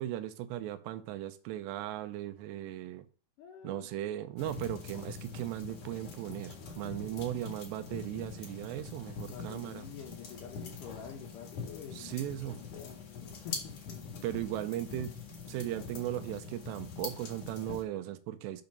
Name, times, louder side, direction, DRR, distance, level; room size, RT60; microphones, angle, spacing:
voice 1, 0.0-3.1 3.6-9.8 11.9-12.6 14.2-15.2 15.5-18.6, right 13 dB, 90° right, 10 dB, 3.0 m, -37 dB
voice 2, 3.4-3.9 6.5-7.4 9.3-14.2, left 7 dB, 70° left, 2 dB, 2.2 m, -48 dB
sound 1, 4.4-17.8, left 5 dB, 50° left, 2.3 m, -44 dB
6.6 x 6.0 x 5.3 m, 0.39 s
omnidirectional pair, 4.8 m